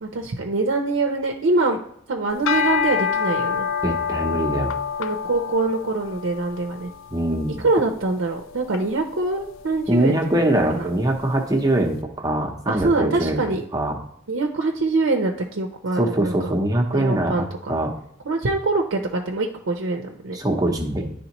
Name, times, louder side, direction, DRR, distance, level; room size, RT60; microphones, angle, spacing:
voice 1, 0.0-1.8 2.1-3.7 5.0-6.9 7.6-10.4 10.7-10.9 12.7-13.6 14.3-16.5 16.9-17.7 18.3-20.4, right 3 dB, 80° right, 2 dB, 0.6 m, -24 dB
sound 1, 2.3-11.7, left 7 dB, 85° left, 0.4 m, -29 dB
voice 2, 3.8-4.7 7.1-7.6 9.9-13.4 13.7-14.0 16.0-17.9 20.3-21.1, right 1 dB, 20° right, 2 dB, 0.8 m, -22 dB
10.5 x 3.6 x 3.0 m, 0.73 s
head